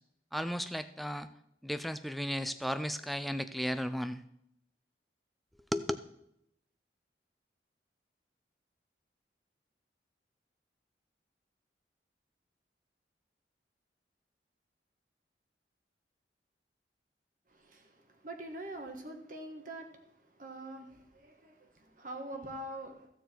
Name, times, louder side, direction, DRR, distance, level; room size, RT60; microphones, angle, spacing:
voice 1, 0.3-1.3 1.6-4.2 5.7-6.0, equal, ahead, 11 dB, 0.4 m, -34 dB
voice 2, 17.5-23.1, right 1 dB, 45° right, 4 dB, 1.5 m, -45 dB
15.0 x 6.8 x 4.5 m, 0.79 s
head